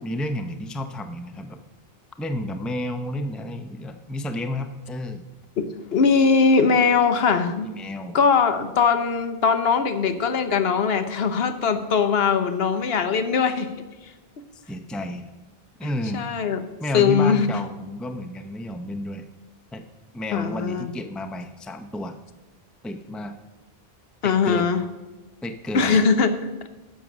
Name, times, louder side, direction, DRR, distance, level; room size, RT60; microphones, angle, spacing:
voice 1, 0.0-1.6 2.2-5.2 7.6-8.2 14.5-15.3 15.8-16.2 16.8-19.2 19.7-19.8 20.1-22.2 22.8-23.3 24.2-24.7 25.4-26.0, left 1 dB, ahead, 8 dB, 0.4 m, -31 dB
voice 2, 5.6-7.7 8.1-13.7 16.1-16.6 16.9-17.5 20.3-20.9 24.2-24.8 25.7-26.3, left 5 dB, 75° left, 10 dB, 1.0 m, -20 dB
11.0 x 6.8 x 6.0 m, 1.1 s
omnidirectional pair, 1.0 m